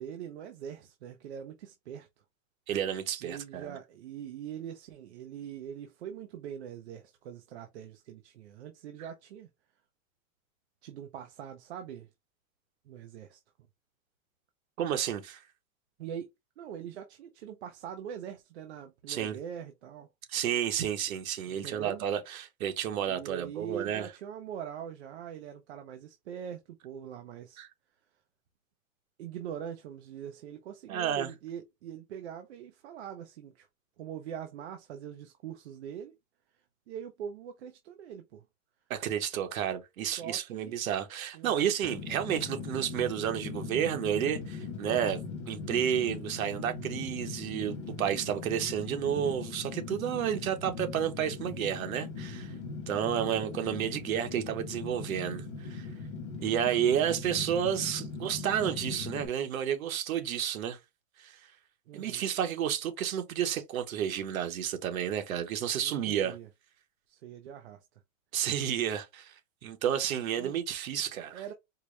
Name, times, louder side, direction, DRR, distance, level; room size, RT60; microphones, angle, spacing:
voice 1, 0.0-2.1 3.2-9.5 10.8-12.1 12.9-13.4 16.0-16.3 16.6-20.1 21.5-22.0 23.1-27.6 29.2-33.7 34.0-36.1 36.9-38.4 40.0-40.8 41.3-41.7 53.2-53.6 61.9-62.3 65.8-66.5 67.1-67.8 70.4-70.5 71.3-71.5, right 9 dB, 55° right, 0.6 m, -43 dB
voice 2, 2.7-3.8 14.8-15.4 19.1-19.4 20.3-24.1 27.6-27.7 30.9-31.3 38.9-45.2 45.5-52.5 52.9-55.9 56.4-60.8 61.2-61.4 61.9-66.3 68.3-69.3 69.6-71.4, right 9 dB, 80° right, 1.1 m, -31 dB
Fire, 41.8-59.3, left 4 dB, 25° left, 0.4 m, -40 dB
4.5 x 2.1 x 3.1 m
supercardioid pair, 180°, 41 cm